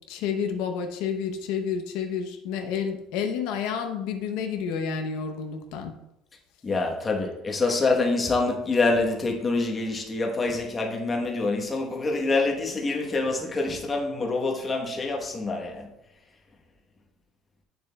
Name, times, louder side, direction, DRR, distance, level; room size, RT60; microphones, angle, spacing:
voice 1, 0.1-5.9, left 7 dB, 80° left, 5 dB, 0.7 m, -30 dB
voice 2, 6.6-15.9, left 3 dB, 20° left, 2 dB, 1.1 m, -26 dB
8.6 x 6.8 x 2.3 m, 0.85 s
cardioid pair, 140°, 0 cm